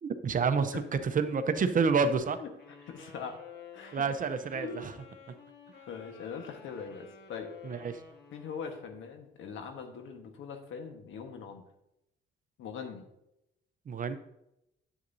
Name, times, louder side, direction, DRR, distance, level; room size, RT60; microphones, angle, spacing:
voice 1, 0.0-2.4 3.9-4.9 7.6-7.9 13.9-14.2, right 5 dB, 45° right, 10 dB, 0.7 m, -28 dB
sound 1, 2.6-9.1, left 6 dB, 55° left, 1.5 m, -52 dB
voice 2, 2.9-3.4 3.7-4.0 4.5-4.8 5.9-7.8 8.3-11.6 12.6-13.0, left 6 dB, 80° left, 5 dB, 1.4 m, -41 dB
9.9 x 7.9 x 2.7 m, 0.85 s
cardioid pair, 90°, 20 cm